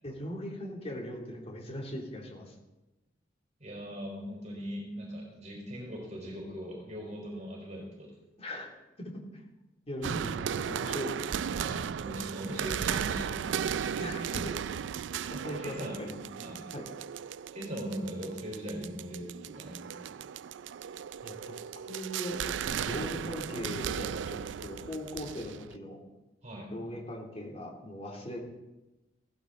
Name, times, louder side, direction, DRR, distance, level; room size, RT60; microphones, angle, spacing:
voice 1, 0.0-2.5 8.4-9.1 9.9-11.4 14.0-14.5 15.3-16.2 16.7-16.8 21.2-26.0 26.7-28.4, left 1 dB, 35° left, -1 dB, 3.2 m, -40 dB
voice 2, 3.6-8.1 11.6-14.5 15.6-16.0 16.4-16.6 17.5-20.2 26.4-26.9, equal, 40° right, -2 dB, 4.5 m, -40 dB
sound 1, 10.0-25.8, right 8 dB, 85° right, 0.4 m, -36 dB
17.0 x 15.5 x 4.1 m, 1.0 s
head